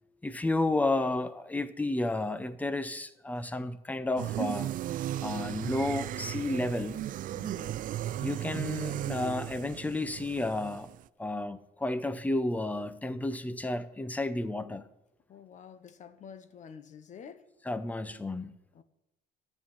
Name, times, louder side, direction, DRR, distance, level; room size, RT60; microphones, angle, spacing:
voice 1, 0.2-4.7 5.2-7.1 8.2-10.9 11.2-14.8 17.7-18.6, left 2 dB, 10° left, 0.7 m, -32 dB
sound 1, 4.2-11.0, right 12 dB, 55° right, 0.4 m, -36 dB
voice 2, 7.3-7.9 15.3-17.4 18.7-18.8, left 7 dB, 45° left, 1.0 m, -49 dB
12.5 x 5.7 x 8.7 m
cardioid pair, 110°, 17 cm